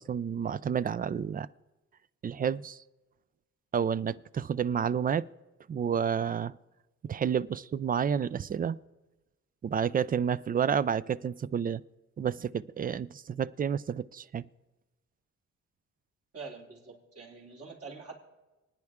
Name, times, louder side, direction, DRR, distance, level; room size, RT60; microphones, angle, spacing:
voice 1, 0.0-1.5 2.2-2.8 3.7-5.3 5.7-6.5 7.1-8.8 9.6-11.8 12.2-14.4, right 7 dB, 30° right, 19 dB, 0.3 m, -30 dB
voice 2, 16.3-18.1, right 4 dB, 50° right, -1 dB, 3.2 m, -45 dB
27.0 x 9.6 x 3.6 m, 1.1 s
cardioid pair, 90°, 30 cm